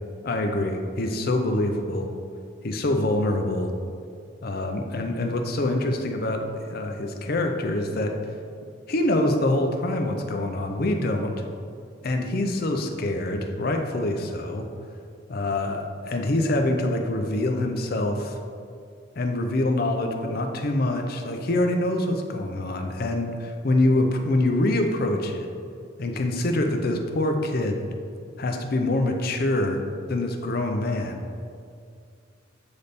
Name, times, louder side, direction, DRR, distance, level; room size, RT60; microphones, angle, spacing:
voice 1, 0.2-2.1 2.6-3.7 4.4-6.4 6.7-8.1 8.9-11.3 12.0-14.7 15.3-18.4 19.2-25.5 26.0-27.8 28.4-29.8 30.1-31.2, left 1 dB, 50° left, 4 dB, 0.5 m, -25 dB
8.0 x 3.4 x 4.1 m, 2.3 s
head